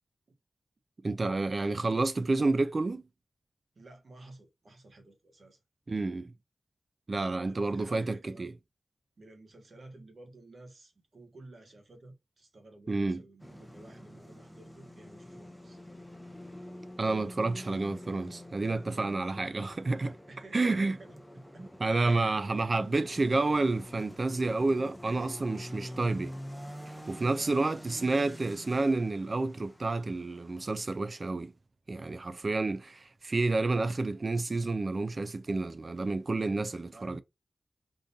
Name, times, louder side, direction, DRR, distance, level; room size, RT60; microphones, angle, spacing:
voice 1, 1.0-3.0 5.9-6.3 7.1-8.5 12.9-13.2 17.0-20.2 20.5-21.0 21.8-26.3 27.1-31.5 31.9-37.2, right 3 dB, 45° right, 0.3 m, -29 dB
voice 2, 3.7-5.6 7.4-8.5 9.2-15.8 20.3-21.7 22.0-22.9 25.0-25.3 27.3-27.8 36.7-37.2, right 2 dB, 60° right, 1.0 m, -53 dB
sound 1, 13.4-30.8, equal, ahead, 0.7 m, -47 dB
3.6 x 2.5 x 2.7 m
wide cardioid pair, 65°, 0 cm